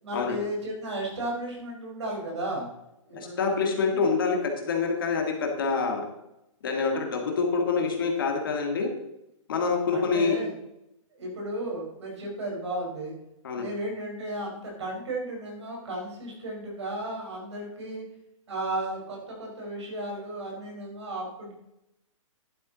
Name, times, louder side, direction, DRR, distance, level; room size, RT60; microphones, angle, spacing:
voice 1, 0.0-2.7 3.1-4.0 9.6-10.5 11.2-13.1 13.5-18.1 18.5-21.5, right 1 dB, 55° right, -1 dB, 4.5 m, -34 dB
voice 2, 3.1-6.1 6.6-8.9 9.5-10.4 13.4-13.7, left 4 dB, 40° left, 3 dB, 1.8 m, -26 dB
11.5 x 8.7 x 3.9 m, 0.86 s
hypercardioid pair, 180°, 17 cm